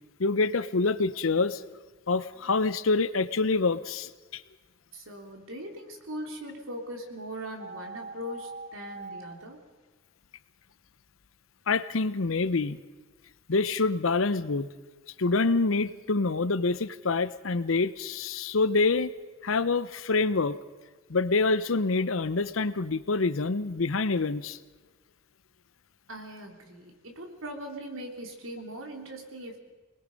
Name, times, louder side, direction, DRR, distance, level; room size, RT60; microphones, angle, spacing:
voice 1, 0.2-1.6 2.1-4.4 11.7-12.8 13.5-14.7 15.2-19.1 19.4-20.6 21.1-24.6, left 3 dB, 85° left, 14 dB, 0.8 m, -26 dB
voice 2, 4.9-9.6 26.1-29.6, equal, 85° right, 2 dB, 3.4 m, -40 dB
sound 1, 7.6-9.2, right 3 dB, 70° right, 7.6 m, -41 dB
27.0 x 20.0 x 5.3 m, 1.3 s
head